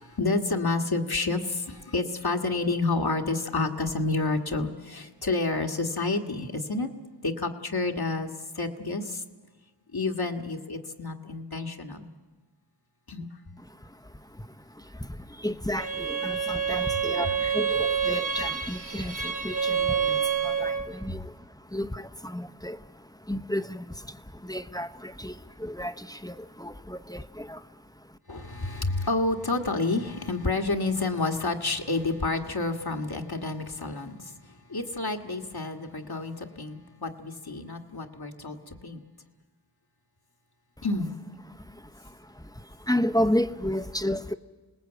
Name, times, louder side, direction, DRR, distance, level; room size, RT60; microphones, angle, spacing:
voice 1, 0.0-6.9 7.2-9.2 9.9-12.1 13.1-13.3 20.8-21.0 28.3-39.0 40.8-41.1, left 3 dB, 60° left, 4 dB, 1.7 m, -29 dB
voice 2, 13.6-28.2 40.8-40.9 41.5-44.3, left 1 dB, 10° left, 10 dB, 0.8 m, -33 dB
Bowed string instrument, 15.8-20.9, right 7 dB, 50° right, 2.7 m, -28 dB
27.5 x 19.5 x 8.1 m, 1.4 s
wide cardioid pair, 45°, 41 cm